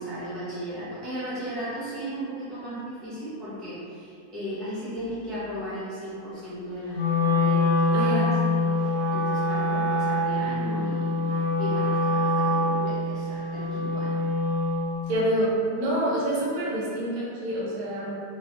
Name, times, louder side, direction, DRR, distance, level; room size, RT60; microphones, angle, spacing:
voice 1, 0.0-14.3, equal, ahead, -12 dB, 0.5 m, -36 dB
Wind instrument woodwind instrument, 6.9-14.9, left 2 dB, 75° left, 1.4 m, -25 dB
voice 2, 7.9-8.3 15.1-18.2, right 1 dB, 80° right, -5 dB, 1.1 m, -27 dB
3.0 x 2.1 x 2.9 m, 2.4 s
omnidirectional pair, 1.5 m